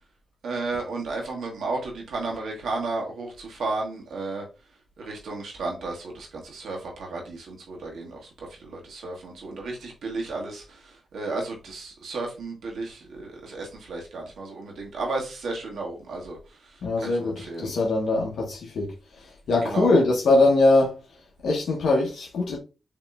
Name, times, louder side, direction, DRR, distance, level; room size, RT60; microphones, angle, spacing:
voice 1, 0.4-4.4 5.0-17.7 19.6-19.9, right 3 dB, 85° right, 1.5 m, -33 dB
voice 2, 16.8-21.0 21.4-22.6, left 2 dB, 80° left, 1.1 m, -22 dB
7.2 x 3.0 x 2.4 m
cardioid pair, 100°, 0 cm